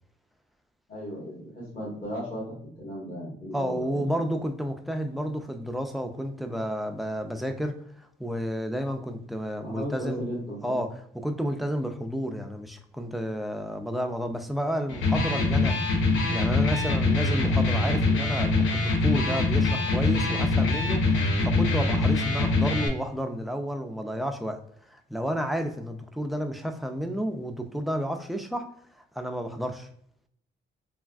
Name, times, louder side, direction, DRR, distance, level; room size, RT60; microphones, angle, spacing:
voice 1, 0.9-4.0 9.6-10.8, equal, 35° left, 1.4 m, -36 dB
voice 2, 3.5-10.3 10.6-15.9 16.3-24.6 24.9-29.9, equal, ahead, 0.4 m, -31 dB
Electric guitar, 14.9-22.9, left 3 dB, 80° left, 0.7 m, -24 dB
3.4 x 2.3 x 2.3 m
cardioid pair, 90°, 20 cm